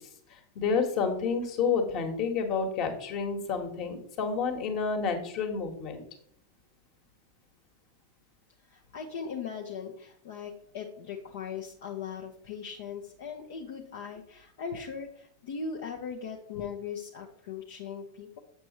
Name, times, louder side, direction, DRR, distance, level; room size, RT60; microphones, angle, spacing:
voice 1, 0.5-6.0, left 5 dB, 40° left, 4 dB, 1.5 m, -29 dB
voice 2, 8.7-18.4, left 6 dB, 55° left, 0 dB, 0.9 m, -39 dB
8.0 x 6.6 x 3.1 m, 0.66 s
figure-of-eight pair, 90°, 0 cm